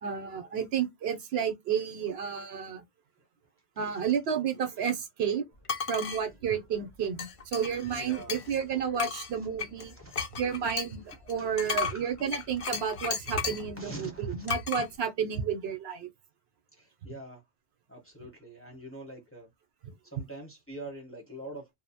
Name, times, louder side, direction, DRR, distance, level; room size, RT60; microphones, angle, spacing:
voice 1, 0.0-2.8 3.8-5.4 5.9-9.9 10.4-16.1, right 7 dB, 70° right, 0.8 m, -31 dB
sound 1, 5.6-6.2 7.2-8.6 9.0-13.7 14.5-14.8, left 6 dB, 55° left, 0.4 m, -34 dB
voice 2, 7.9-8.6 10.0-10.5 11.4-12.1 12.4-12.5 13.3-14.5 16.7-17.4 17.9-19.5 20.0-21.7, right 1 dB, 15° left, 0.8 m, -45 dB
2.6 x 2.0 x 2.6 m
omnidirectional pair, 1.1 m